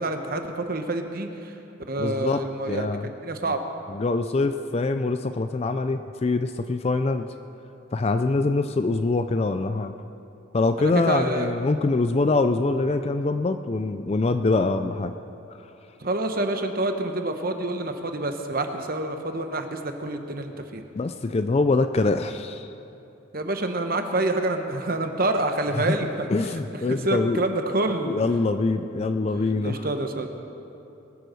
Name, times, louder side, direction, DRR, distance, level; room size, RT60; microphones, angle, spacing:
voice 1, 0.0-1.5 1.9-2.9 3.2-3.6 10.8-11.5 16.0-20.8 23.3-26.3 26.7-28.2 29.6-30.3, right 2 dB, 45° right, 6 dB, 1.0 m, -27 dB
voice 2, 2.0-2.4 2.7-3.1 3.9-7.3 7.9-9.9 10.5-15.1 21.0-22.7 25.8-25.9 26.3-27.4 28.0-29.9, left 3 dB, 30° left, 9 dB, 0.3 m, -24 dB
21.5 x 7.9 x 6.3 m, 2.9 s
head